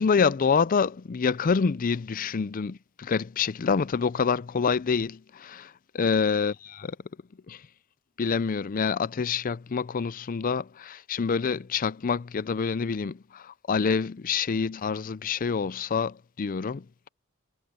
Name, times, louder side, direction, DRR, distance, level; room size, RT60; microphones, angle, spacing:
voice 1, 0.0-5.7 6.0-7.0 7.5-7.6 8.2-16.9, left 5 dB, 40° left, 0.4 m, -27 dB
head